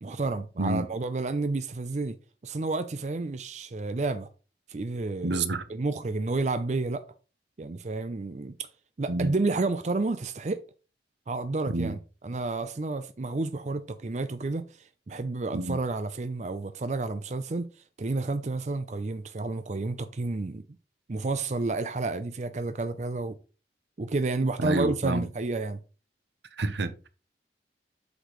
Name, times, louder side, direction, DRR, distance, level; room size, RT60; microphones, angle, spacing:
voice 1, 0.0-2.2 2.4-4.3 4.7-7.0 7.6-8.7 9.0-10.6 11.3-12.0 12.2-17.7 18.0-20.6 21.1-23.4 24.0-25.8, right 3 dB, 40° right, 0.5 m, -30 dB
voice 2, 5.2-5.6 9.1-9.3 11.7-12.0 15.5-15.8 24.6-25.3 26.6-27.1, right 2 dB, 85° right, 0.9 m, -28 dB
8.2 x 6.1 x 3.1 m
head